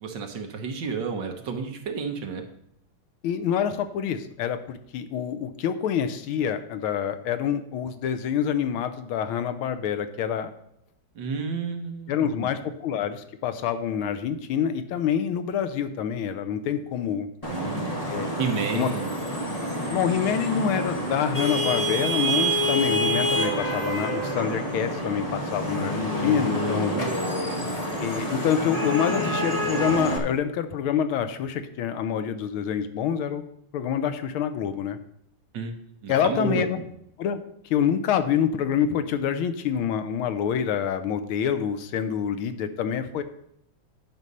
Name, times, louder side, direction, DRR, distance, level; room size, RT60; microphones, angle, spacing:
voice 1, 0.0-2.4 11.1-12.5 17.5-18.0 18.3-19.1 26.9-27.6 35.5-35.7 36.0-36.7, right 5 dB, 60° right, 4 dB, 1.7 m, -31 dB
voice 2, 3.2-10.5 12.1-17.3 18.1-18.3 18.7-18.9 19.9-26.9 28.0-33.4 33.7-35.0 36.1-36.8 37.2-37.4 37.6-43.2, left 8 dB, 80° left, 10 dB, 1.6 m, -26 dB
Vehicle horn car horn honking / Traffic noise roadway noise, 17.4-30.2, equal, 25° left, 1.0 m, -27 dB
9.8 x 6.2 x 5.4 m, 0.75 s
omnidirectional pair, 2.3 m